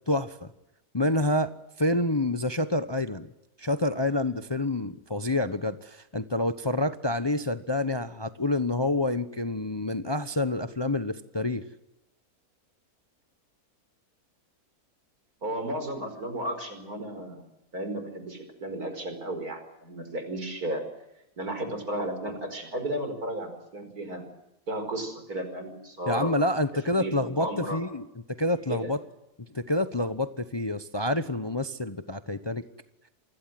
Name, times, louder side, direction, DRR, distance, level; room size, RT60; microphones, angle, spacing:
voice 1, 0.1-0.5 0.9-3.3 3.6-11.7 26.1-29.0 29.5-32.6, left 1 dB, 20° left, 11 dB, 0.8 m, -28 dB
voice 2, 15.4-17.4 17.7-20.8 21.4-24.3 24.7-26.3 26.9-27.8 28.7-28.9, right 1 dB, 80° right, 7 dB, 5.6 m, -34 dB
27.0 x 21.0 x 7.7 m, 0.89 s
omnidirectional pair, 1.6 m